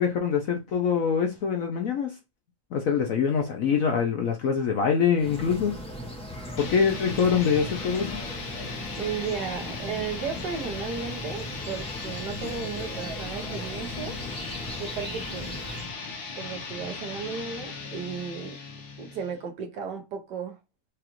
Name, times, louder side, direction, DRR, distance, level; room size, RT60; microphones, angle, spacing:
voice 1, 0.0-2.1 2.7-5.8 6.6-8.2, left 6 dB, 65° left, 0.9 m, -24 dB
sound 1, 5.2-15.9, equal, 5° left, 0.6 m, -38 dB
sound 2, 6.6-19.4, left 4 dB, 85° left, 1.7 m, -38 dB
voice 2, 9.0-14.2 14.8-15.5 16.4-18.6 19.0-20.6, right 6 dB, 70° right, 1.4 m, -34 dB
4.8 x 2.4 x 3.0 m
omnidirectional pair, 2.0 m